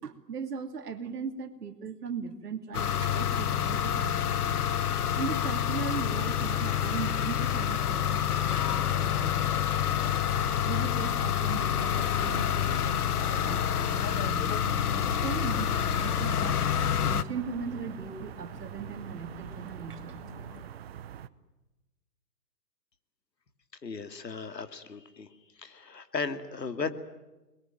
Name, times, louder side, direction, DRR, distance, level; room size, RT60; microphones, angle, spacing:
voice 1, 0.0-4.7 5.1-9.5 10.6-16.6 17.0-20.2 20.5-20.6, right 6 dB, 70° right, 7 dB, 2.8 m, -39 dB
sound 1, 2.7-17.2, left 9 dB, 65° left, 1.3 m, -28 dB
sound 2, 10.2-20.6, left 7 dB, 45° left, 2.3 m, -51 dB
sound 3, 15.1-21.3, right 9 dB, 40° right, 1.1 m, -43 dB
voice 2, 23.8-25.3 25.6-26.9, left 4 dB, 85° left, 9 dB, 2.9 m, -36 dB
29.5 x 21.5 x 9.2 m, 1.1 s
hypercardioid pair, 145°, 48 cm